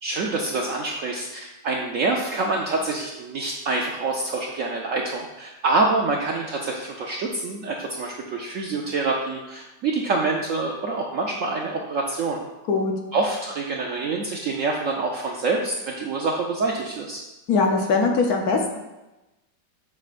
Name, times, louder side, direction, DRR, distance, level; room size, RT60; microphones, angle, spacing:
voice 1, 0.0-12.4 13.1-17.2, right 3 dB, 70° right, 0 dB, 0.8 m, -26 dB
voice 2, 17.5-18.8, left 4 dB, 65° left, 2 dB, 1.1 m, -21 dB
7.3 x 6.1 x 2.5 m, 1.0 s
omnidirectional pair, 1.9 m